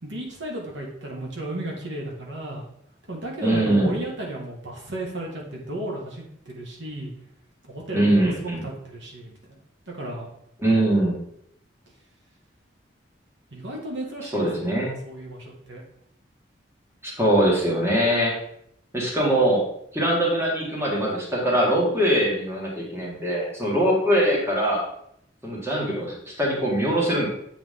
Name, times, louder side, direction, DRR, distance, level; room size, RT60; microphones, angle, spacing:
voice 1, 0.0-2.6 3.1-7.1 7.6-9.6 9.9-10.3 13.5-15.8, right 1 dB, 75° right, -2 dB, 1.7 m, -34 dB
voice 2, 3.4-4.0 7.9-8.6 10.6-11.2 14.3-14.9 17.0-18.3 18.9-19.6 19.9-24.9 25.4-27.3, right 1 dB, 15° right, -3 dB, 1.9 m, -22 dB
8.0 x 4.7 x 3.7 m, 0.71 s
head